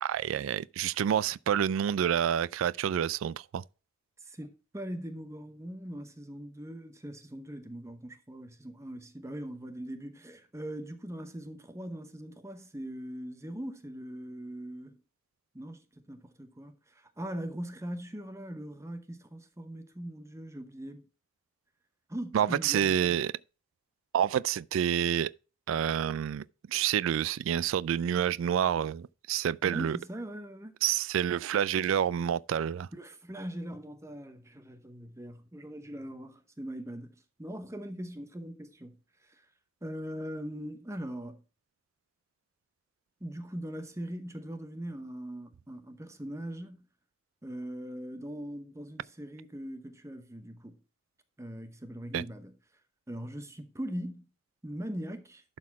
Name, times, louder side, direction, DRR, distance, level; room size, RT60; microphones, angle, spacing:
voice 1, 0.0-3.6 22.3-23.3 24.1-25.3 25.7-30.0 30.8-32.9 52.1-52.2, right 9 dB, 70° right, 0.3 m, -28 dB
voice 2, 4.2-15.0 15.5-21.1 22.1-23.2 29.6-30.7 32.9-39.0 39.2-39.4 39.8-41.4 43.2-46.8 47.4-50.8 51.4-52.5 53.1-54.3 54.6-55.4, equal, 15° right, 0.8 m, -41 dB
12.0 x 4.1 x 4.7 m
head